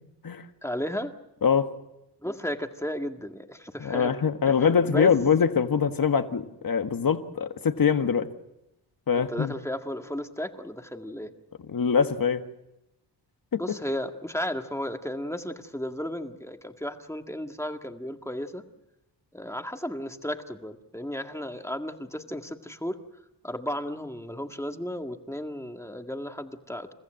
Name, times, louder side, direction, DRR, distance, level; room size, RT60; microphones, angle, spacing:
voice 1, 0.6-1.1 2.2-4.1 4.6-5.2 9.1-11.3 13.6-18.6 19.3-23.0 23.4-26.9, left 1 dB, 5° left, 5 dB, 1.9 m, -34 dB
voice 2, 1.4-1.7 3.8-8.3 9.1-9.5 11.7-12.4 13.5-13.6, left 6 dB, 55° left, 8 dB, 1.6 m, -23 dB
30.0 x 15.0 x 7.7 m, 0.92 s
cardioid pair, 60°, 42 cm